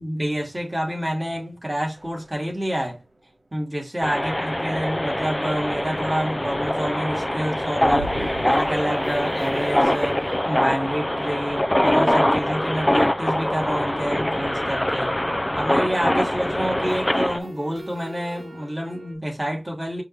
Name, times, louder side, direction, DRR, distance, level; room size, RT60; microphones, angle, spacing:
voice 1, 0.0-3.0 3.5-15.1 15.6-20.0, equal, 15° right, 2.4 m, -28 dB
sound 1, 2.0-3.2 3.4-3.5 3.8-3.9 7.8-13.5 16.2-19.2, right 1 dB, 75° right, 1.7 m, -42 dB
sound 2, 4.0-17.4, left 1 dB, 15° left, 0.4 m, -23 dB
5.4 x 2.9 x 3.3 m
wide cardioid pair, 65°, 0 cm